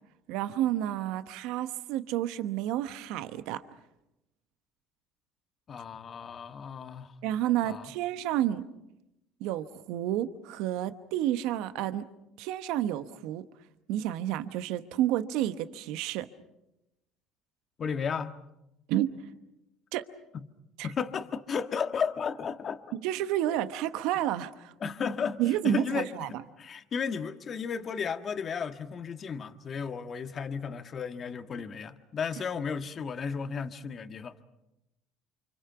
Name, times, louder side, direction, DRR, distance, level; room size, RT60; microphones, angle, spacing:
voice 1, 0.3-3.6 7.2-8.7 9.4-12.0 12.4-13.4 13.9-16.3 18.9-19.1 19.9-20.1 20.8-20.9 22.9-24.7 25.4-26.3, right 12 dB, 75° right, 11 dB, 1.0 m, -30 dB
voice 2, 5.7-7.1 7.6-7.9 17.8-18.3 20.3-20.5 20.8-22.9 24.8-34.3, left 6 dB, 40° left, 8 dB, 1.5 m, -34 dB
29.0 x 25.5 x 5.8 m, 0.90 s
supercardioid pair, 80°, 0 cm